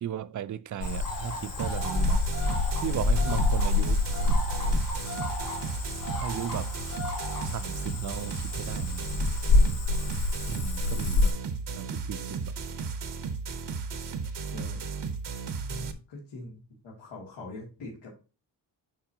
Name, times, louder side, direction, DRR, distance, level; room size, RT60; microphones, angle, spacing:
voice 1, 0.0-4.0 6.2-6.7 7.4-9.2 10.5-11.3 11.8-12.5, right 10 dB, 45° right, 0.4 m, -36 dB
Cricket / Frog, 0.8-11.3, left 3 dB, 70° left, 3.9 m, -27 dB
sound 1, 1.6-15.9, right 5 dB, 65° right, 1.1 m, -35 dB
voice 2, 14.5-14.8 15.5-18.1, left 2 dB, 85° left, 2.4 m, -43 dB
8.9 x 5.1 x 2.8 m
wide cardioid pair, 105°, 44 cm